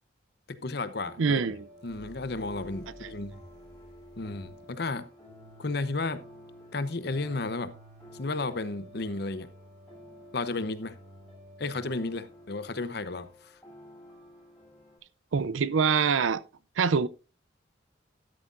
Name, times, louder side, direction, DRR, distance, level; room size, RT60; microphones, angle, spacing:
voice 1, 0.5-1.4 1.8-3.4 4.2-5.1 5.6-6.2 6.7-7.7 8.1-9.5 10.3-10.9 11.6-13.3, left 3 dB, 55° left, 0.8 m, -33 dB
sound 1, 1.1-15.0, equal, 5° left, 7.3 m, -51 dB
voice 2, 1.2-1.7 3.0-3.1 15.3-16.4 16.8-17.1, right 5 dB, 85° right, 0.5 m, -25 dB
sound 2, 1.7-4.7, right 1 dB, 55° right, 3.3 m, -54 dB
12.5 x 11.0 x 2.5 m
head